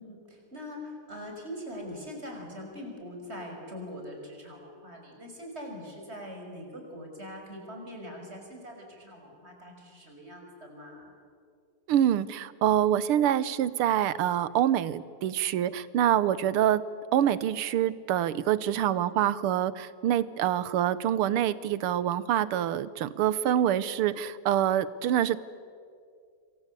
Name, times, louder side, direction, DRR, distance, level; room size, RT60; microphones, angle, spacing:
voice 1, 0.0-11.1, equal, 30° right, 2 dB, 5.9 m, -42 dB
voice 2, 11.9-16.8 17.1-25.4, right 11 dB, 90° right, 17 dB, 1.8 m, -26 dB
27.5 x 23.0 x 8.3 m, 2.2 s
omnidirectional pair, 2.4 m